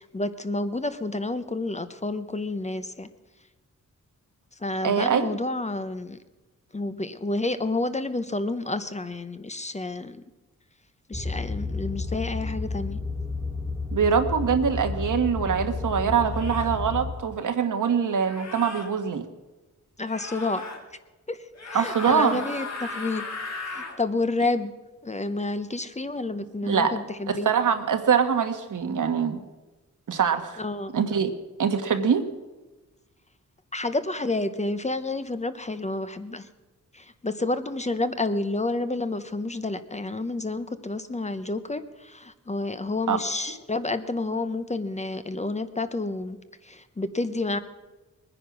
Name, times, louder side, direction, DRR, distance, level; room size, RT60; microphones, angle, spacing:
voice 1, 0.0-3.1 4.6-6.2 6.7-10.2 11.1-13.0 20.0-20.6 21.3-23.3 23.7-24.7 25.0-27.5 30.6-30.9 33.7-36.5 36.9-46.4 46.6-47.6, left 2 dB, 20° left, 11 dB, 0.8 m, -29 dB
voice 2, 4.8-5.3 13.9-19.2 21.7-22.4 26.6-26.9 27.3-29.4 30.1-30.6 30.9-31.3 31.6-32.2 43.1-43.2, right 7 dB, 75° right, 7 dB, 1.4 m, -23 dB
sound 1, 11.1-17.1, left 3 dB, 10° right, 1.4 m, -31 dB
sound 2, 14.9-15.1 16.3-16.8 18.2-18.9 20.1-20.8 21.5-24.0, left 3 dB, 55° left, 2.4 m, -36 dB
21.0 x 10.0 x 6.1 m, 1.1 s
wide cardioid pair, 115°, 31 cm